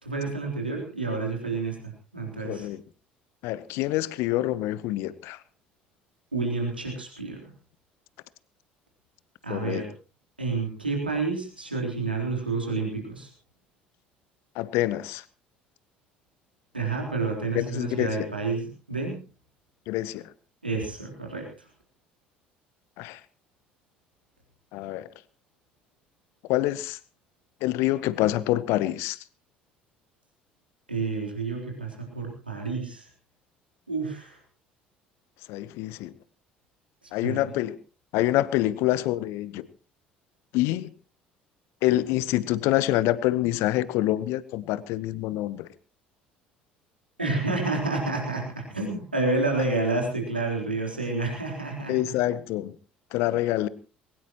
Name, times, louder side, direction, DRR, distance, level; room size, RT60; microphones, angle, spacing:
voice 1, 0.0-2.7 6.3-7.5 9.4-9.9 10.4-13.3 16.7-19.2 20.6-21.7 30.9-33.1 33.9-34.4 37.2-37.4 47.2-52.1, right 3 dB, 85° right, 0 dB, 3.7 m, -29 dB
voice 2, 2.4-2.8 3.4-5.4 9.5-9.8 14.5-15.2 17.5-18.3 19.9-20.3 23.0-23.2 24.7-25.1 26.5-27.0 27.6-29.2 35.5-36.1 37.1-37.7 38.1-39.7 40.5-40.9 41.8-45.7 51.9-52.7 53.1-53.7, left 15 dB, 55° left, 18 dB, 0.9 m, -26 dB
21.5 x 18.5 x 3.0 m, 0.35 s
figure-of-eight pair, 55°, 5 cm